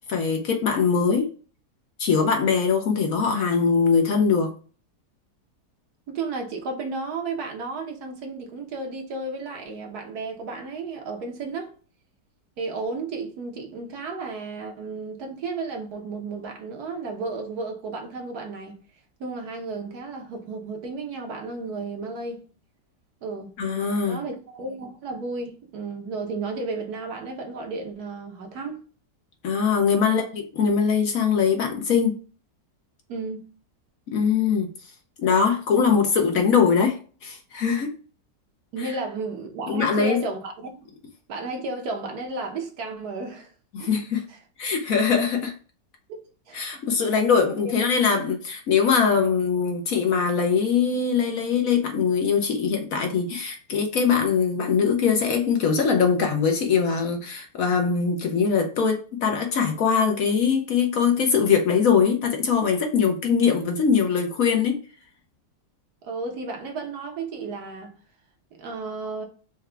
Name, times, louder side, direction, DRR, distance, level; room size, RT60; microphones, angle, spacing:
voice 1, 0.1-1.3 2.0-4.5 23.6-24.2 29.4-32.1 34.1-34.7 35.2-38.0 38.8-38.9 39.7-40.2 43.7-44.2 44.6-45.5 46.5-64.8, left 6 dB, 60° left, 1.0 m, -22 dB
voice 2, 6.1-11.7 12.6-18.8 19.2-22.4 23.2-23.5 24.1-28.8 30.0-30.2 33.1-33.4 38.7-40.9 41.3-43.5 43.8-44.0 44.3-44.4 46.1-46.6 66.0-67.9 68.5-69.3, right 3 dB, 65° right, 1.4 m, -33 dB
4.8 x 2.3 x 3.3 m
omnidirectional pair, 1.8 m